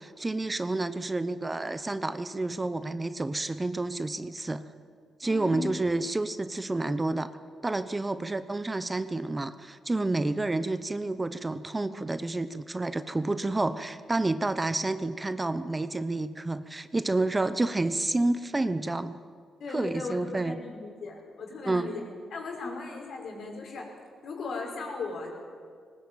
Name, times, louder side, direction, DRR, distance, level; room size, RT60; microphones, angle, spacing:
voice 1, 0.0-4.6 5.2-7.4 7.6-19.2 19.7-20.6 21.7-21.9, right 2 dB, 20° right, 12 dB, 0.9 m, -29 dB
voice 2, 5.2-5.7 19.6-22.0 22.3-23.9 24.2-25.3, left 3 dB, 65° left, 1 dB, 5.4 m, -37 dB
19.0 x 19.0 x 9.1 m, 2.1 s
cardioid pair, 95°, 0 cm